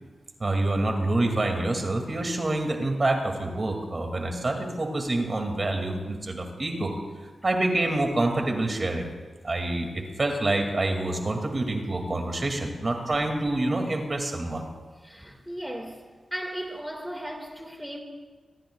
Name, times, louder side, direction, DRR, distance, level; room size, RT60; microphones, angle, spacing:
voice 1, 0.4-6.9 7.4-9.1 9.4-14.6, right 2 dB, 45° right, 2 dB, 2.3 m, -27 dB
voice 2, 15.0-16.0 16.3-18.0, equal, ahead, 2 dB, 1.9 m, -36 dB
25.5 x 14.0 x 2.4 m, 1.4 s
cardioid pair, 55°, 0 cm